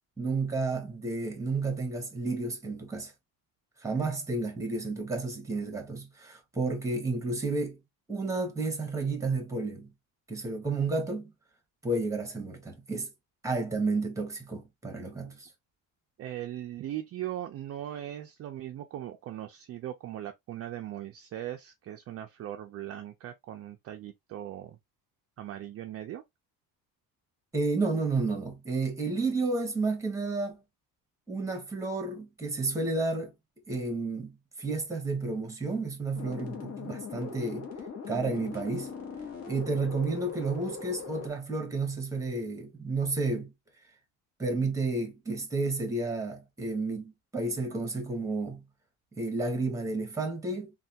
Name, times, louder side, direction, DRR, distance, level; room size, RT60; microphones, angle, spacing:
voice 1, 0.2-3.1 3.8-7.8 8.1-9.9 10.3-11.3 11.8-13.1 13.4-15.5 27.5-30.6 31.3-33.3 33.7-34.3 34.6-37.7 38.1-38.9 39.5-43.5 44.4-48.6 49.2-50.7, right 3 dB, 10° right, 1.0 m, -31 dB
voice 2, 16.2-24.8 25.4-26.2 39.7-39.8, right 12 dB, 40° right, 0.4 m, -39 dB
sound 1, 36.1-41.3, left 5 dB, 45° left, 1.1 m, -40 dB
3.2 x 2.3 x 2.7 m
cardioid pair, 140°, 36 cm